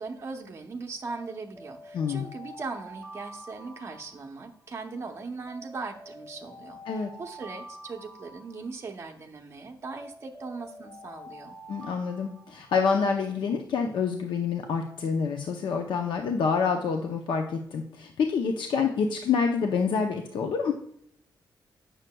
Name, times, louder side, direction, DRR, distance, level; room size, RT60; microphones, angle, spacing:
voice 1, 0.0-11.6, right 4 dB, 35° right, 2 dB, 0.7 m, -39 dB
Alarm, 1.1-4.8 5.5-9.2 9.8-13.1, equal, 10° left, 1.6 m, -47 dB
voice 2, 1.9-2.3 6.9-7.1 11.7-20.7, left 5 dB, 90° left, 3 dB, 0.6 m, -27 dB
9.0 x 6.4 x 2.2 m, 0.69 s
wide cardioid pair, 160°, 8 cm